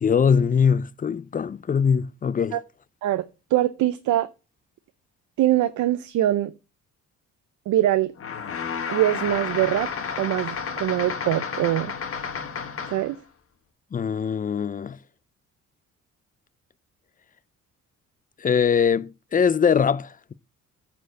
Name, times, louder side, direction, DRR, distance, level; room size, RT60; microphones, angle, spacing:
voice 1, 0.0-2.6 13.9-15.0 18.4-20.3, left 6 dB, 30° left, 0.5 m, -22 dB
voice 2, 3.0-4.3 5.4-6.5 7.7-8.1 8.9-9.9 10.2-11.9 12.9-13.2, right 13 dB, 75° right, 0.7 m, -23 dB
sound 1, 8.2-13.2, left 6 dB, 45° left, 1.5 m, -31 dB
9.2 x 4.6 x 6.4 m
cardioid pair, 90°, 30 cm